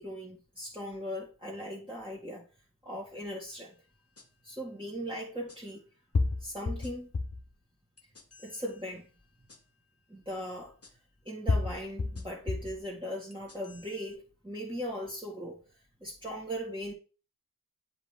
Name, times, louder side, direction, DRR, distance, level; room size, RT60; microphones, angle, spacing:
voice 1, 0.0-2.4 2.8-3.7 4.4-5.8 6.4-7.1 8.4-9.1 10.1-10.7 11.3-15.6 16.0-16.9, equal, 15° right, 2.0 m, -39 dB
sound 1, 4.2-4.3 5.5-5.6 6.1-7.5 8.0-8.5 9.5-9.6 10.8-10.9 11.5-12.8 13.3-13.9, left 3 dB, 40° left, 1.0 m, -31 dB
8.0 x 3.1 x 4.8 m
wide cardioid pair, 40°, 38 cm